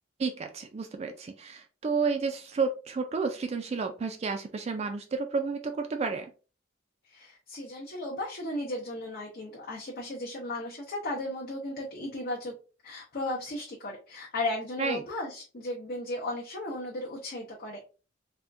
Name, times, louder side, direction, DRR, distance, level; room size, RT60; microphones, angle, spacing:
voice 1, 0.2-6.3 14.8-15.0, right 4 dB, 35° right, 6 dB, 0.3 m, -31 dB
voice 2, 7.1-12.5 12.8-17.8, left 1 dB, 50° left, -3 dB, 0.6 m, -35 dB
3.4 x 2.2 x 2.5 m, 0.34 s
head